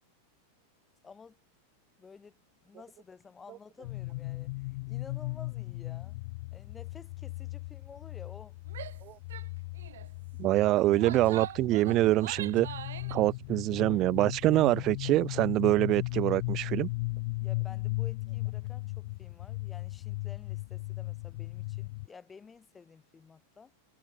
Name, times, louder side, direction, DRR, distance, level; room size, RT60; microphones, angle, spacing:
voice 1, 1.0-1.4 2.0-6.2 6.5-8.6 17.4-23.7, left 5 dB, 15° left, 5.2 m, -52 dB
sound 1, 3.8-22.1, left 22 dB, 50° left, 0.3 m, -37 dB
Female speech woman speaking / Yell, 8.7-9.0 9.3-9.5 9.8-10.1 10.8-13.2, right 11 dB, 60° right, 2.8 m, -42 dB
voice 2, 10.4-12.7 13.1-16.9, right 16 dB, 35° right, 0.4 m, -25 dB
figure-of-eight pair, 90°, 0 cm